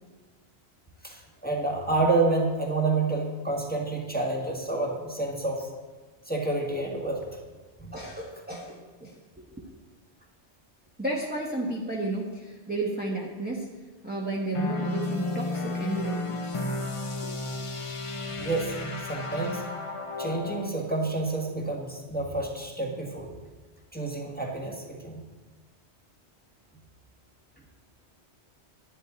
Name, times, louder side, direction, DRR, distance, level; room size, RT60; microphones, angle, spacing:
voice 1, 1.0-5.7 6.2-7.4 7.8-7.9 18.3-19.7 20.2-23.4 23.9-25.2, right 2 dB, 10° left, -2 dB, 1.5 m, -29 dB
voice 2, 7.9-9.5 11.0-13.7 14.0-16.6 17.2-17.3, right 2 dB, 10° right, -3 dB, 1.1 m, -33 dB
sound 1, 14.5-20.7, left 3 dB, 35° left, 0.7 m, -33 dB
10.5 x 10.0 x 4.0 m, 1.3 s
omnidirectional pair, 1.1 m